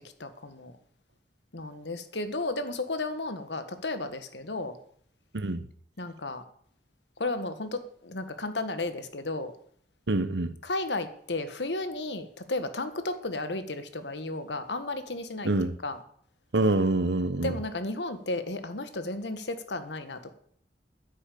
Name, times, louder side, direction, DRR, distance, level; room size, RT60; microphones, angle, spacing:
voice 1, 0.2-0.7 1.5-4.8 6.0-6.4 7.2-9.5 10.6-16.0 17.4-20.3, left 2 dB, 85° left, 1.6 m, -33 dB
voice 2, 10.1-10.5 15.4-15.7 16.5-17.5, right 2 dB, 90° right, 1.0 m, -25 dB
10.0 x 10.0 x 8.4 m
head